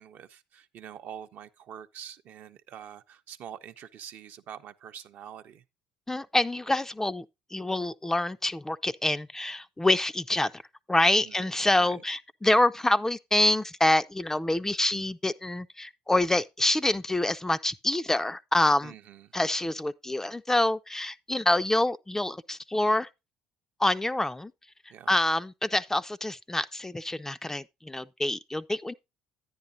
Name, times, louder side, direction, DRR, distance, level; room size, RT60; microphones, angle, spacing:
voice 1, 0.0-5.6 11.2-11.5 11.8-12.0 18.8-19.3 24.9-25.1, right 9 dB, 60° right, 0.6 m, -45 dB
voice 2, 6.1-7.3 7.5-10.5 10.9-18.9 19.3-23.1 23.8-24.5 25.1-28.9, left 1 dB, 10° left, 0.4 m, -26 dB
10.0 x 9.7 x 2.6 m
hypercardioid pair, 60°, 4 cm